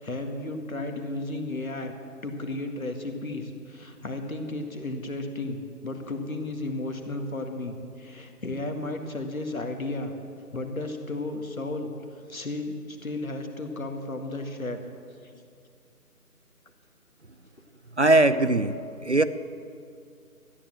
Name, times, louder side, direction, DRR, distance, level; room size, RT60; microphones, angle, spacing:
voice 1, 0.0-1.9 2.2-10.1 10.5-11.9 12.3-14.8 15.2-15.3, left 2 dB, 65° left, 5 dB, 1.9 m, -33 dB
voice 2, 18.0-18.8 19.0-19.2, right 2 dB, 50° right, 12 dB, 0.5 m, -20 dB
13.5 x 10.0 x 7.6 m, 2.3 s
figure-of-eight pair, 160°, 45 cm